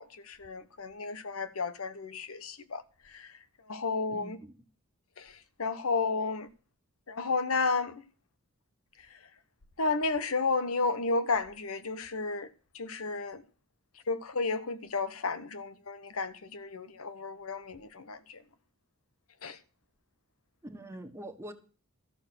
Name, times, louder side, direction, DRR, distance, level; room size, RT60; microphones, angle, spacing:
voice 1, 0.0-3.3 3.7-4.4 5.2-6.5 7.1-7.9 9.8-12.5 12.7-13.4 14.1-18.4 19.4-19.6, left 4 dB, 75° left, 1.1 m, -32 dB
voice 2, 4.1-4.6 20.6-21.5, right 1 dB, 15° right, 1.6 m, -44 dB
14.0 x 6.8 x 6.1 m
head